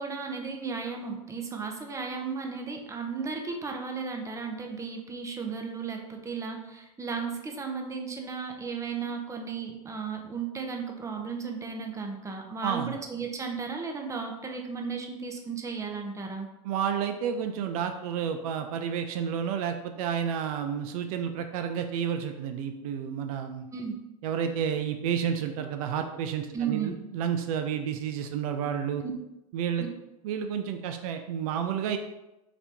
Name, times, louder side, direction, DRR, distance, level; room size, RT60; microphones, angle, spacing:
voice 1, 0.0-16.5 23.7-24.0 26.5-26.9 29.0-29.1, right 5 dB, 15° right, 3 dB, 0.7 m, -35 dB
voice 2, 12.6-12.9 16.6-23.7 24.2-29.0 29.5-29.8 30.2-32.0, right 8 dB, 70° right, 6 dB, 0.5 m, -30 dB
4.1 x 2.9 x 3.4 m, 0.94 s
hypercardioid pair, 100°, 19 cm